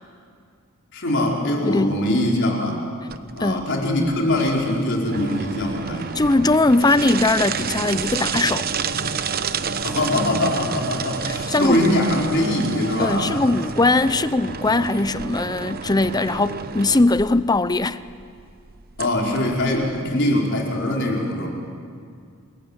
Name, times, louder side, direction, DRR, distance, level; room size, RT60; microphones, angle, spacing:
voice 1, 0.9-2.8 3.3-6.2 9.8-13.4 19.0-21.5, left 1 dB, 55° left, 4.8 m, -22 dB
voice 2, 1.6-2.0 3.4-3.7 6.1-8.7 11.3-11.9 13.0-18.0, left 2 dB, 20° left, 0.6 m, -20 dB
sound 1, 3.1-20.1, right 5 dB, 45° right, 0.9 m, -30 dB
29.0 x 21.5 x 8.9 m
head